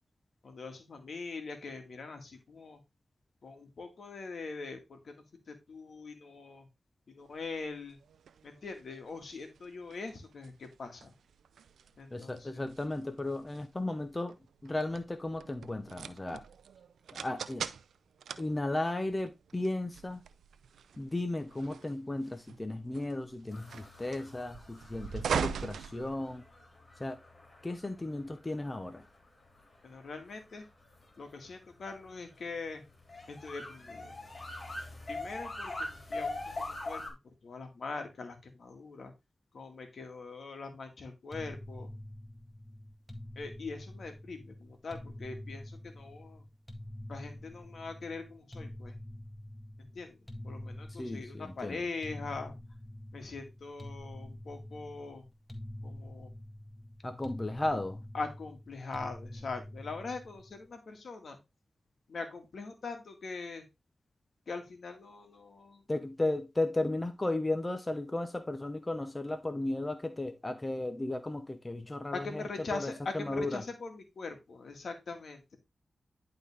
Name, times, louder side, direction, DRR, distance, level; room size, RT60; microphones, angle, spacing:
voice 1, 0.4-2.8 3.4-6.7 7.1-8.0 8.4-11.1 12.0-12.6 29.8-30.6 31.2-32.8 33.3-34.2 35.1-39.1 39.5-41.9 43.4-46.5 47.1-48.9 49.8-52.5 53.1-55.2 55.8-56.3 58.1-61.4 62.1-63.6 64.5-65.8 72.1-75.6, left 4 dB, 70° left, 1.9 m, -42 dB
sound 1, 7.4-26.7, right 7 dB, 90° right, 0.4 m, -42 dB
voice 2, 12.1-14.4 14.6-16.4 17.1-17.7 18.4-20.2 21.0-26.4 27.0-27.2 27.6-29.1 50.9-51.8 57.0-58.0 65.9-73.6, left 2 dB, 25° left, 1.0 m, -35 dB
sound 2, 23.5-37.1, left 2 dB, 45° left, 2.9 m, -43 dB
sound 3, 41.3-60.6, left 1 dB, 10° left, 1.8 m, -46 dB
11.0 x 3.9 x 3.5 m
cardioid pair, 45°, 0 cm